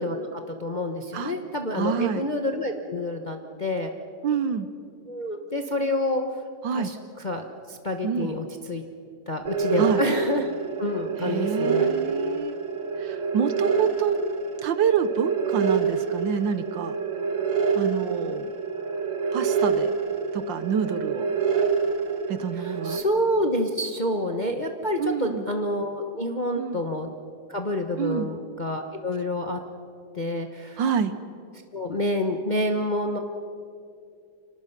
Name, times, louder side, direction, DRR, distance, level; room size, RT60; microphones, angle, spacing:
voice 1, 0.0-3.9 5.1-6.2 6.7-8.8 9.3-10.5 10.8-11.9 22.5-27.1 27.5-29.6 30.1-30.8 31.7-33.2, left 1 dB, 30° left, 4 dB, 0.9 m, -28 dB
voice 2, 1.7-2.3 4.2-4.7 6.6-6.9 8.0-8.3 9.8-10.0 11.2-12.5 13.0-14.2 14.6-17.0 17.7-18.5 19.3-19.9 20.3-21.3 22.3-23.0 25.0-25.4 26.6-26.8 28.0-28.3 30.8-31.2, right 7 dB, 65° right, 12 dB, 1.4 m, -27 dB
sound 1, 9.4-23.0, right 5 dB, 40° right, 1.6 m, -27 dB
29.5 x 25.0 x 5.9 m, 2.5 s
omnidirectional pair, 2.4 m